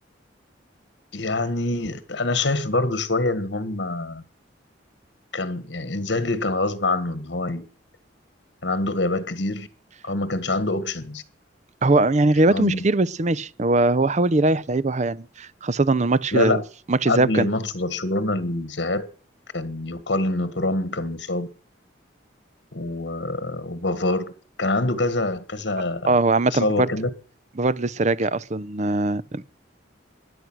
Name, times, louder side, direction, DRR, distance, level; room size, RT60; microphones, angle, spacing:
voice 1, 1.1-4.2 5.3-7.6 8.6-9.7 10.0-11.2 12.5-12.8 16.3-16.6 17.1-19.1 19.5-21.5 22.7-24.3 24.6-26.2 26.5-27.1, left 2 dB, 65° left, 1.6 m, -25 dB
voice 2, 11.8-16.6 16.9-17.5 26.1-26.9 27.6-29.4, right 2 dB, 40° right, 0.6 m, -21 dB
16.5 x 11.0 x 6.2 m
head